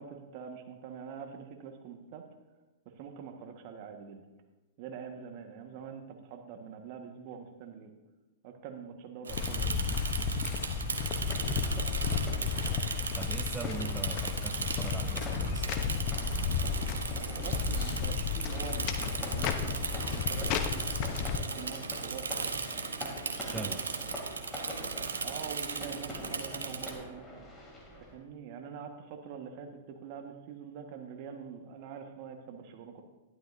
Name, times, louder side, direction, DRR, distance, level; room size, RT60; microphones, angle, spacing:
voice 1, 0.0-2.3 2.8-4.2 4.8-7.9 8.4-9.9 17.2-18.9 19.3-22.6 25.2-27.3 28.0-33.0, right 6 dB, 50° right, 4 dB, 1.5 m, -45 dB
Bicycle / Mechanisms, 9.2-26.9, right 5 dB, 85° right, 0.9 m, -37 dB
sound 1, 9.3-21.4, left 6 dB, 45° left, 0.9 m, -33 dB
sound 2, 10.9-28.2, equal, 10° left, 2.7 m, -45 dB
voice 2, 13.0-15.8 23.3-23.8, right 4 dB, 15° right, 4 dB, 0.6 m, -41 dB
12.0 x 11.0 x 2.7 m, 1.1 s
hypercardioid pair, 110°, 0 cm